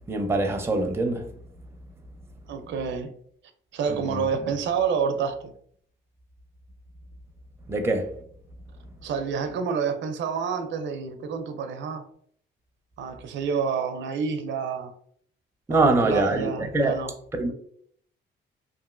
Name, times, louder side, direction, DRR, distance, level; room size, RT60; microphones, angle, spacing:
voice 1, 0.1-1.3 3.9-4.2 7.7-8.1 15.7-17.0 17.4-17.5, right 2 dB, 10° right, 0.5 m, -24 dB
voice 2, 2.5-3.2 3.7-5.5 9.0-12.0 13.0-14.9 15.7-17.1, right 6 dB, 70° right, 0.4 m, -28 dB
3.0 x 2.5 x 2.4 m
cardioid pair, 90°, 20 cm